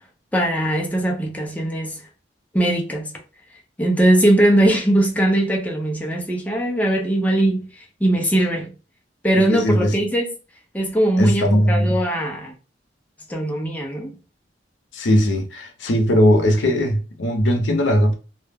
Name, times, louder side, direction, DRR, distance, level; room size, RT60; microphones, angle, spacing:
voice 1, 0.3-2.0 2.5-3.1 3.8-8.7 9.2-10.3 10.7-12.5 13.3-14.1, right 1 dB, 10° left, 0.4 m, -20 dB
voice 2, 9.3-10.0 11.2-12.0 14.9-18.1, equal, 90° left, 0.6 m, -19 dB
2.2 x 2.0 x 3.2 m
head